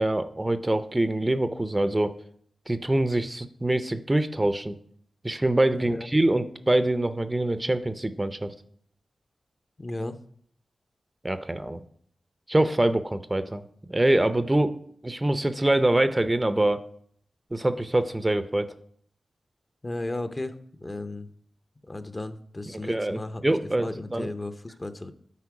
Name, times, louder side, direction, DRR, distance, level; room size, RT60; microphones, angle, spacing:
voice 1, 0.0-2.2 2.7-4.7 5.2-8.5 11.2-11.8 12.5-14.7 15.0-16.8 17.5-18.7 22.9-24.3, right 1 dB, 20° right, 11 dB, 0.5 m, -24 dB
voice 2, 5.7-6.1 9.8-10.2 19.8-21.3 21.9-25.1, left 2 dB, 30° left, 10 dB, 0.6 m, -35 dB
8.4 x 4.2 x 4.8 m, 0.62 s
cardioid pair, 55°, 0 cm